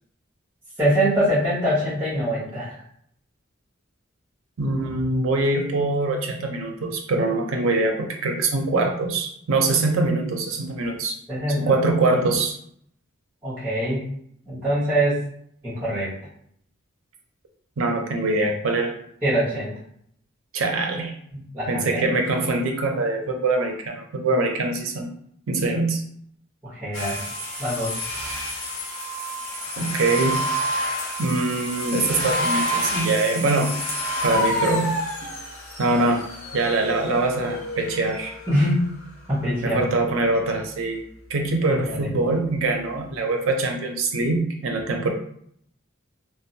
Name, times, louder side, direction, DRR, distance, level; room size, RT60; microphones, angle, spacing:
voice 1, 0.8-2.8 11.3-11.7 13.4-14.0 14.5-15.2 15.6-16.1 19.2-19.7 21.3-22.0 26.6-27.3 27.6-27.9 38.5-38.9 39.3-39.9 41.9-42.1, equal, 10° right, -12 dB, 1.0 m, -23 dB
voice 2, 4.6-11.2 11.6-12.6 17.8-18.9 20.5-21.1 21.7-25.1 25.5-26.0 29.5-30.4 31.2-33.8 34.2-34.9 35.8-36.3 36.5-38.3 39.6-41.0 41.3-45.1, right 2 dB, 80° right, 3 dB, 0.5 m, -23 dB
sound 1, 26.9-38.7, equal, 85° left, 0.9 m, -29 dB
2.5 x 2.0 x 2.6 m, 0.67 s
head